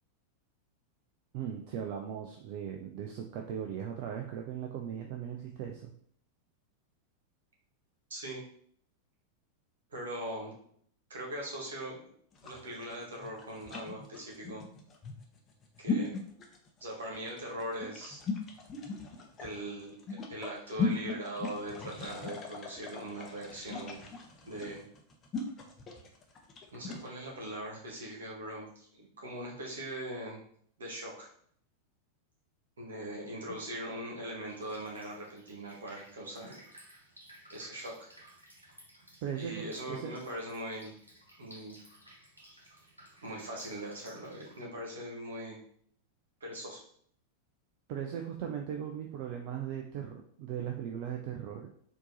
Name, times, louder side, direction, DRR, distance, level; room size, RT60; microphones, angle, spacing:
voice 1, 1.3-5.9 39.2-40.1 47.9-51.7, right 9 dB, 45° right, 2 dB, 0.5 m, -38 dB
voice 2, 8.1-8.4 9.9-10.5 11.1-12.0 12.4-14.6 15.8-16.1 16.8-18.2 19.4-24.0 24.5-24.8 26.7-30.4 30.8-31.3 32.8-36.6 37.5-38.2 39.4-40.9 41.4-41.7 43.2-45.6 46.4-46.8, right 1 dB, 65° right, -2 dB, 1.6 m, -41 dB
sound 1, 12.3-27.1, left 4 dB, 25° left, 0.8 m, -38 dB
Drip, 34.5-44.6, right 1 dB, 85° right, 1.2 m, -57 dB
4.4 x 2.9 x 4.0 m, 0.62 s
figure-of-eight pair, 90°, 0 cm